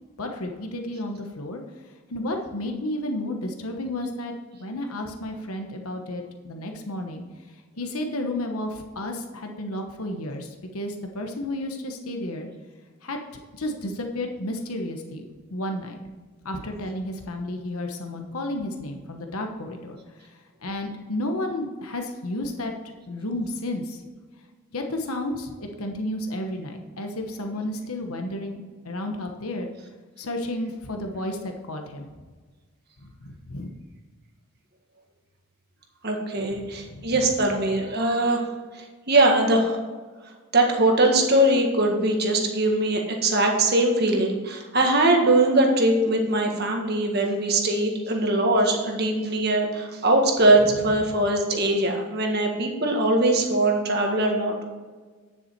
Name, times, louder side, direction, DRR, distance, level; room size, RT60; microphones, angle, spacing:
voice 1, 0.2-1.6 2.1-7.2 7.8-12.5 13.0-13.2 13.5-16.0 16.4-20.3 20.6-24.0 24.7-29.7 30.2-32.1 33.0-33.8 36.6-37.2 50.7-50.8, left 1 dB, 85° left, 3 dB, 1.2 m, -32 dB
voice 2, 36.0-38.5 38.7-39.8 40.5-54.6, right 1 dB, 45° right, 2 dB, 1.7 m, -21 dB
10.0 x 7.2 x 4.6 m, 1.4 s
head